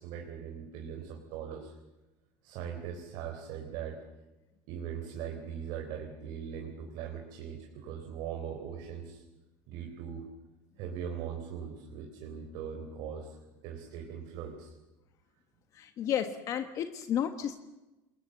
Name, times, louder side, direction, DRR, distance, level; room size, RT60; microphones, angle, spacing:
voice 1, 0.0-1.7 2.4-4.0 4.7-9.2 9.7-10.3 10.8-13.4 13.6-14.7, right 8 dB, 60° right, 3 dB, 3.9 m, -40 dB
voice 2, 15.7-17.6, left 9 dB, 40° left, 8 dB, 1.3 m, -32 dB
28.5 x 21.5 x 7.9 m, 1.1 s
cardioid pair, 155°, 8 cm